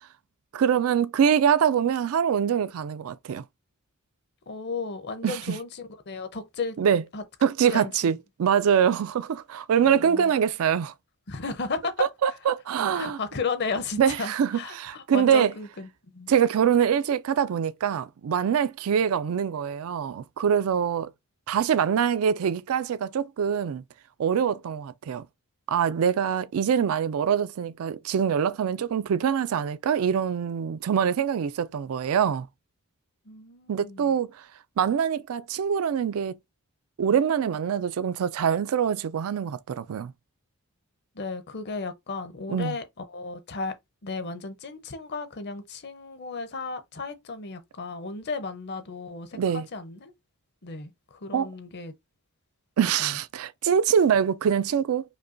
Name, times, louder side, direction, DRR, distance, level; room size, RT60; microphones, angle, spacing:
voice 1, 0.5-3.4 5.2-5.6 6.8-7.0 7.4-10.9 12.0-13.2 14.0-15.5 16.3-21.1 21.5-23.8 24.2-25.2 25.7-32.5 33.7-34.3 34.8-36.3 37.0-40.1 42.5-42.7 49.3-49.7 51.3-51.5 52.8-55.0, right 8 dB, 70° right, 0.4 m, -24 dB
voice 2, 4.5-6.8 7.1-7.2 7.7-8.2 9.8-10.3 11.3-12.0 12.3-12.4 13.0-15.9 16.1-16.3 33.3-34.1 41.1-43.7 44.0-50.1 50.6-51.9 53.0-53.2, left 4 dB, 50° left, 0.6 m, -34 dB
5.2 x 2.2 x 2.5 m
head